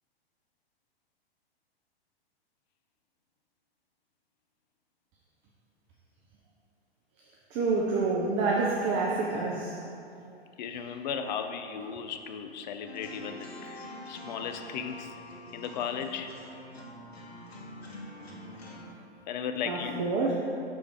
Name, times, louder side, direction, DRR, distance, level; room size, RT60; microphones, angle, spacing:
voice 1, 7.5-9.8 19.6-20.3, right 3 dB, 25° right, -3 dB, 0.5 m, -27 dB
voice 2, 10.6-15.1 15.5-16.3 19.3-20.1, left 7 dB, 45° left, 7 dB, 0.5 m, -36 dB
sound 1, 12.9-18.8, left 1 dB, 80° left, 1.0 m, -45 dB
6.1 x 3.3 x 4.7 m, 2.6 s
figure-of-eight pair, 110°, 31 cm